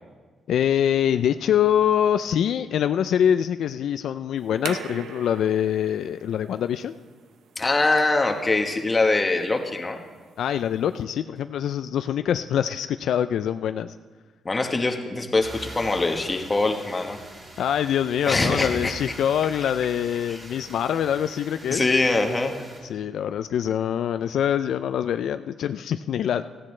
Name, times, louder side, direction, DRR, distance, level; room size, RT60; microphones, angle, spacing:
voice 1, 0.5-6.9 10.4-13.9 17.6-21.8 22.9-26.4, left 9 dB, 70° left, 10 dB, 0.3 m, -24 dB
sound 1, 4.4-11.0, right 6 dB, 75° right, 0.8 m, -42 dB
voice 2, 7.6-10.0 14.4-17.2 18.3-18.9 20.3-20.4 21.7-22.6, left 2 dB, 20° left, 4 dB, 1.2 m, -23 dB
sound 2, 15.4-22.8, right 1 dB, 25° right, 5.5 m, -42 dB
17.5 x 15.5 x 3.2 m, 1.5 s
cardioid pair, 150°, 0 cm